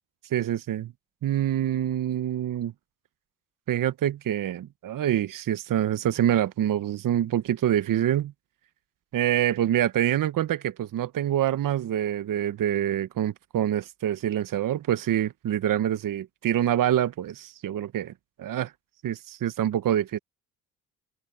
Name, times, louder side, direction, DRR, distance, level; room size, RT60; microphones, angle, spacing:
voice 1, 0.3-0.9 1.2-2.7 3.7-8.3 9.1-18.1 18.4-18.7 19.0-20.2, right 11 dB, 50° right, 1.3 m, -26 dB
open air
hypercardioid pair, 60°, 41 cm